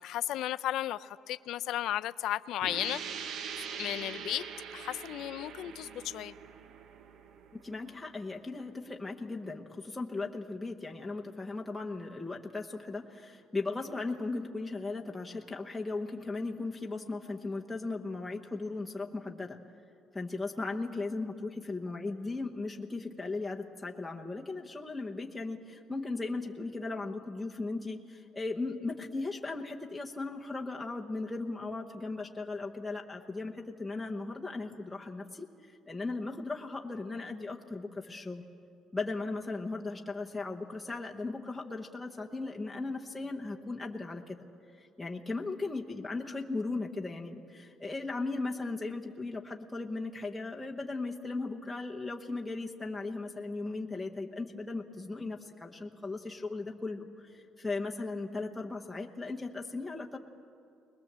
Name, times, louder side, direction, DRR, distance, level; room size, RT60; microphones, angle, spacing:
voice 1, 0.0-3.0 3.8-4.4 4.7-6.3, left 13 dB, 65° left, 13 dB, 0.4 m, -34 dB
sound 1, 2.6-8.1, right 7 dB, 50° right, 0.8 m, -43 dB
voice 2, 7.5-19.6 20.1-38.5 38.9-44.4 44.8-60.2, left 3 dB, 5° left, -1 dB, 0.9 m, -37 dB
21.5 x 20.5 x 7.4 m, 2.5 s
cardioid pair, 160°, 0 cm